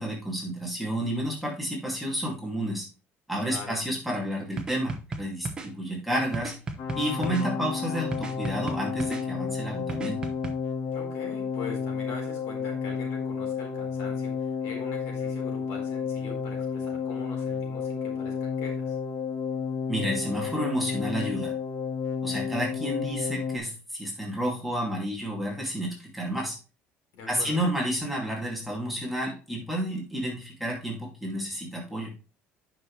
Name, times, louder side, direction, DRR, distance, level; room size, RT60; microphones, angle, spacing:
voice 1, 0.0-2.9 3.3-6.6 7.0-10.2 19.9-21.5 22.2-26.6 27.3-32.1, equal, ahead, -3 dB, 2.3 m, -30 dB
voice 2, 3.5-3.8 10.9-19.0 27.1-27.6, left 4 dB, 65° left, 1 dB, 4.0 m, -42 dB
sound 1, 4.6-5.7 6.3-7.5 8.1-9.2 9.9-10.5, right 3 dB, 15° right, 1.0 m, -34 dB
sound 2, 6.8-23.6, left 6 dB, 50° left, 1.3 m, -31 dB
9.4 x 6.0 x 3.2 m, 0.34 s
cardioid pair, 160°, 5 cm